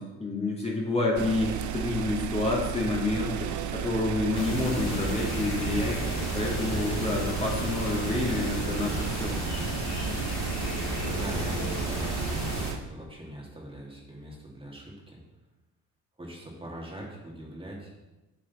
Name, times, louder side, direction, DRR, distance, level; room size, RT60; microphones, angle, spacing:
voice 1, 0.0-6.0 6.3-9.4, left 2 dB, 20° left, -3 dB, 2.5 m, -29 dB
sound 1, 1.2-12.8, right 9 dB, 75° right, 0.7 m, -34 dB
sound 2, 4.3-12.7, left 2 dB, 60° left, 2.6 m, -33 dB
voice 2, 11.1-15.2 16.2-17.9, right 1 dB, 20° right, -3 dB, 2.4 m, -42 dB
8.2 x 7.4 x 4.3 m, 1.0 s
cardioid pair, 90°, 30 cm